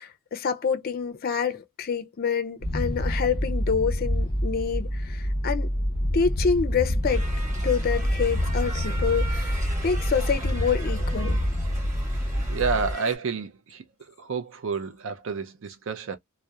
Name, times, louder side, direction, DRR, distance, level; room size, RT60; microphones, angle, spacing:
voice 1, 0.0-5.7 6.1-7.3 7.6-11.4, left 6 dB, 45° left, 0.4 m, -27 dB
sound 1, 2.6-12.9, equal, 25° left, 0.9 m, -27 dB
sound 2, 7.0-13.2, right 3 dB, 35° right, 1.3 m, -40 dB
voice 2, 12.5-16.2, right 5 dB, 65° right, 0.5 m, -30 dB
2.7 x 2.0 x 2.3 m
head